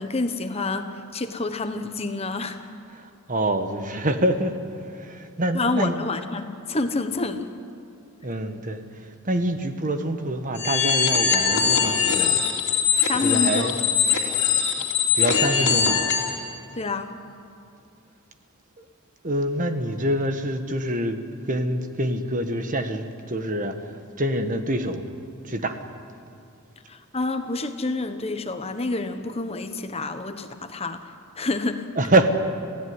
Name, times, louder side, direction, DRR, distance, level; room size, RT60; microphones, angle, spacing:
voice 1, 0.0-2.6 5.5-7.5 13.0-13.8 16.8-17.1 26.9-31.0 31.4-31.9, left 3 dB, 30° left, 8 dB, 1.1 m, -28 dB
voice 2, 2.9-4.6 4.9-5.9 8.2-12.4 13.2-13.8 14.8-14.9 15.1-16.0 18.8-18.9 19.2-21.2 21.5-23.8 24.2-25.0 25.4-25.8 32.0-32.3, right 1 dB, 40° right, 8 dB, 1.4 m, -26 dB
sound 1, 10.6-16.4, left 7 dB, 55° left, 3.5 m, -22 dB
27.0 x 16.5 x 9.7 m, 2.7 s
head